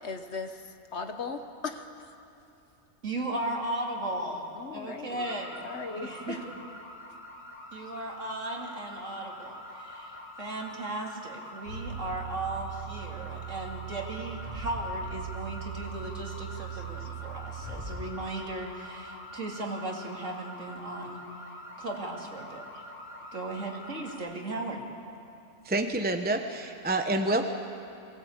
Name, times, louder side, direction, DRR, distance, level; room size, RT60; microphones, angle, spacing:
voice 1, 0.0-0.6 0.9-1.8 4.6-5.3 5.6-6.4 16.7-17.1 22.7-22.8, left 4 dB, 50° left, 7 dB, 1.3 m, -38 dB
voice 2, 3.0-6.4 7.7-21.2 21.8-22.6 23.3-24.8, right 2 dB, 60° right, 0 dB, 2.9 m, -36 dB
sound 1, 5.1-24.2, left 1 dB, 10° left, 2.7 m, -45 dB
sound 2, 11.6-18.1, right 7 dB, 80° right, 3.7 m, -40 dB
voice 3, 25.6-27.5, right 2 dB, 10° right, 5 dB, 0.7 m, -28 dB
22.5 x 17.5 x 8.6 m, 2.8 s
omnidirectional pair, 1.5 m